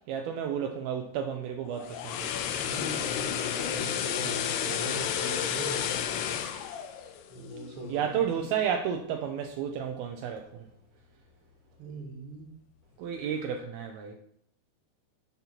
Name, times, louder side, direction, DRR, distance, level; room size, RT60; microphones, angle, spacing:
voice 1, 0.1-2.3 7.9-10.7 13.0-14.1, right 8 dB, 80° right, 4 dB, 2.4 m, -32 dB
sound 1, 1.7-7.9 8.2-8.4, left 9 dB, 90° left, 2.7 m, -32 dB
voice 2, 2.5-6.1 7.3-8.4 11.8-12.5, right 2 dB, 45° right, 0 dB, 2.0 m, -41 dB
10.5 x 4.3 x 5.9 m, 0.73 s
omnidirectional pair, 4.7 m